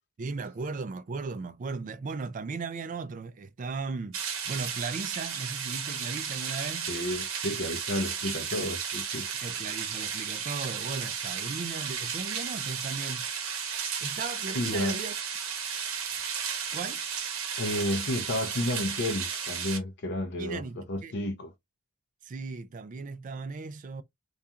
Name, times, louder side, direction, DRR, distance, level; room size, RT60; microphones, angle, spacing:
voice 1, 0.2-4.2 4.4-6.9 9.4-13.3 14.0-15.1 16.7-17.0 20.4-21.2 22.2-24.0, right 4 dB, 35° right, 0.3 m, -37 dB
sound 1, 4.1-19.8, right 7 dB, 70° right, 0.8 m, -34 dB
voice 2, 6.9-9.4 14.5-15.0 17.6-21.5, left 1 dB, 50° left, 0.5 m, -31 dB
2.4 x 2.3 x 2.7 m
head